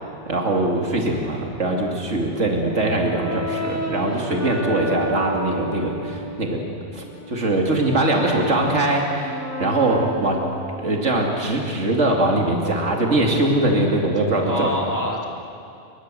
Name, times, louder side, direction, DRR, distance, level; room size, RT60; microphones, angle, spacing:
voice 1, 0.3-6.6 6.9-10.4 10.8-14.7, right 2 dB, 80° right, 1 dB, 2.9 m, -22 dB
Brass instrument, 2.3-6.3 6.9-10.9, right 1 dB, 15° right, 1.8 m, -31 dB
voice 2, 14.4-15.3, left 1 dB, 15° left, -2 dB, 3.4 m, -28 dB
28.0 x 24.0 x 7.7 m, 2.6 s
omnidirectional pair, 1.2 m